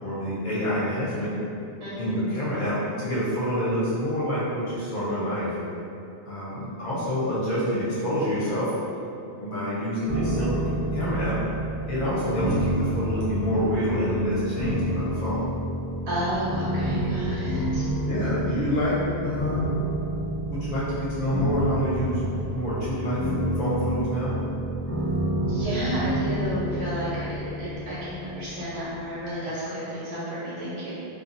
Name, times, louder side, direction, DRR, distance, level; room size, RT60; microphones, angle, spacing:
voice 1, 0.0-1.3 2.0-5.5 6.3-8.7 9.4-10.6 10.9-11.4 11.9-15.4 18.1-19.0 19.2-19.7 20.5-22.2 22.5-23.3 23.6-24.3, equal, 60° left, -10 dB, 0.8 m, -27 dB
voice 2, 1.8-2.2 16.1-17.9 25.5-30.9, equal, 85° right, -10 dB, 1.2 m, -31 dB
sound 1, 10.1-29.0, right 1 dB, 15° left, 0.7 m, -29 dB
2.6 x 2.3 x 2.5 m, 2.7 s
omnidirectional pair, 1.1 m